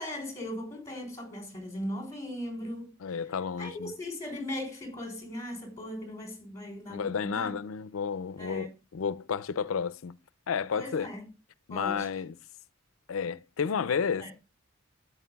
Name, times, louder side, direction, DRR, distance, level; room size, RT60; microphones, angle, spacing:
voice 1, 0.0-2.9 3.6-7.5 8.4-8.7 10.7-11.2 11.7-12.1 14.2-14.3, left 1 dB, 15° left, 3.6 m, -38 dB
voice 2, 3.0-3.9 6.9-10.2 10.5-11.1 11.7-12.3 13.1-14.3, left 6 dB, 85° left, 0.5 m, -31 dB
13.0 x 9.0 x 2.3 m
head